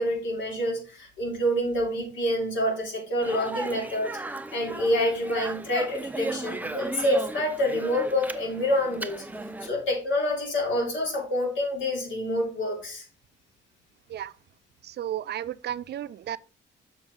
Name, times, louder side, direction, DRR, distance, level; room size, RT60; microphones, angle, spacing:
voice 1, 0.0-4.2 4.5-9.2 9.6-13.0, left 1 dB, 70° left, 3.2 m, -27 dB
Speech, 3.2-9.7, right 2 dB, 10° right, 0.6 m, -36 dB
voice 2, 14.8-16.4, right 11 dB, 55° right, 0.5 m, -33 dB
7.1 x 6.1 x 3.7 m
cardioid pair, 90°, 20 cm